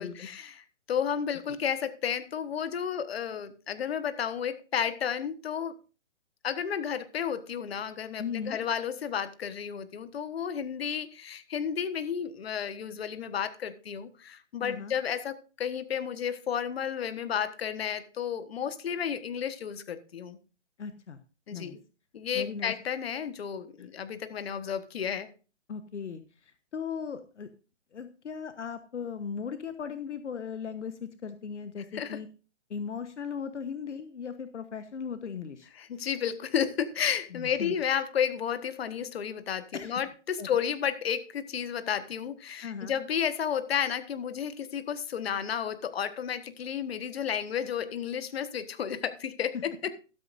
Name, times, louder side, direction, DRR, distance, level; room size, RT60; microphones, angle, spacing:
voice 1, 0.0-5.7 6.4-20.4 21.5-21.8 22.1-25.3 31.9-32.2 35.8-49.9, left 8 dB, 55° left, 1.4 m, -32 dB
voice 2, 8.2-8.6 14.6-15.0 20.8-21.2 21.5-21.8 22.3-22.7 23.8-23.9 25.7-27.5 27.9-32.3 32.7-35.7 37.3-37.8 39.7-39.9 40.4-40.5 42.6-43.0, left 6 dB, 70° left, 1.1 m, -37 dB
13.5 x 13.0 x 2.6 m
hypercardioid pair, 145°, 36 cm